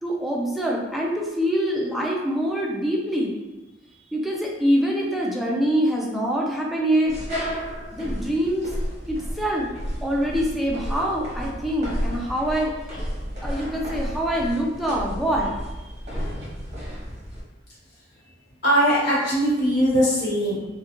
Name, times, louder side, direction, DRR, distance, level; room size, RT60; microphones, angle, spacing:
voice 1, 0.0-3.3 4.1-7.2 7.9-8.7 9.1-9.7 10.0-12.7 13.4-15.6, equal, ahead, -3 dB, 0.4 m, -24 dB
sound 1, 7.1-17.4, equal, 40° right, 0.8 m, -32 dB
voice 2, 18.6-20.7, equal, 60° left, -8 dB, 1.2 m, -20 dB
2.3 x 2.2 x 2.9 m, 1.1 s
head